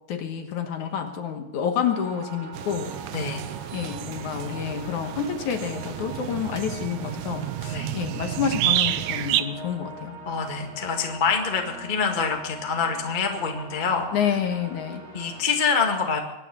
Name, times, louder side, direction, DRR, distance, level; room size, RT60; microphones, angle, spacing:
voice 1, 0.1-2.9 3.7-10.2 14.1-15.0, left 8 dB, 65° left, 6 dB, 2.5 m, -29 dB
sound 1, 1.8-15.4, right 2 dB, 60° right, 5.8 m, -42 dB
sound 2, 2.5-9.4, right 14 dB, 80° right, 1.7 m, -30 dB
voice 2, 3.1-3.5 4.3-4.4 7.7-7.9 10.2-14.1 15.1-16.2, left 5 dB, 25° left, 3 dB, 1.1 m, -26 dB
23.0 x 9.8 x 6.1 m, 1.0 s
omnidirectional pair, 4.1 m